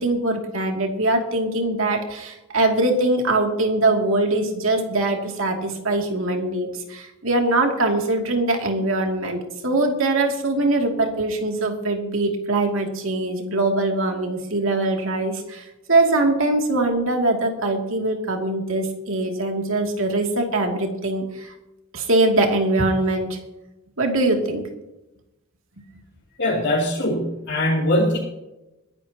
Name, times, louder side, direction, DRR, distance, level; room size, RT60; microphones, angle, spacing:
voice 1, 0.0-21.5 21.9-23.4 24.0-24.6, right 2 dB, 70° right, 2 dB, 2.7 m, -22 dB
voice 2, 26.4-28.2, left 1 dB, 60° left, -6 dB, 3.2 m, -21 dB
22.0 x 11.5 x 3.0 m, 0.96 s
head